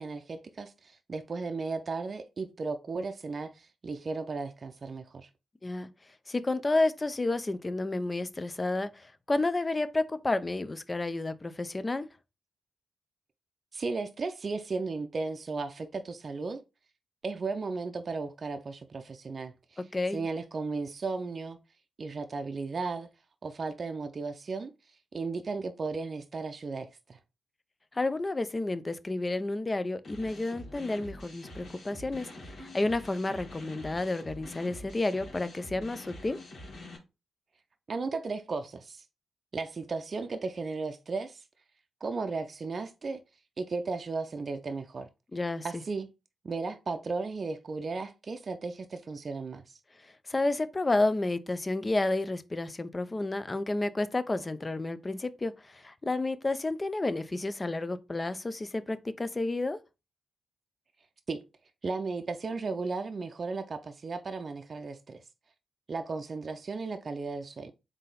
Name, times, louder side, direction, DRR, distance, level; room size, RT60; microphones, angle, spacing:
voice 1, 0.0-5.3 13.7-16.6 17.2-19.8 20.1-21.6 22.0-23.1 23.4-24.7 25.1-27.2 37.9-39.0 39.5-41.4 42.0-43.2 43.6-45.1 45.6-46.1 46.4-49.7 61.3-61.4 61.8-65.2 65.9-67.7, right 4 dB, 50° right, 0.5 m, -35 dB
voice 2, 6.3-12.1 19.8-20.3 27.9-36.4 45.3-45.8 50.0-59.8, left 2 dB, 30° left, 0.5 m, -31 dB
sound 1, 30.0-37.0, left 1 dB, 65° left, 1.6 m, -46 dB
3.8 x 2.7 x 3.9 m
supercardioid pair, 50°, 0 cm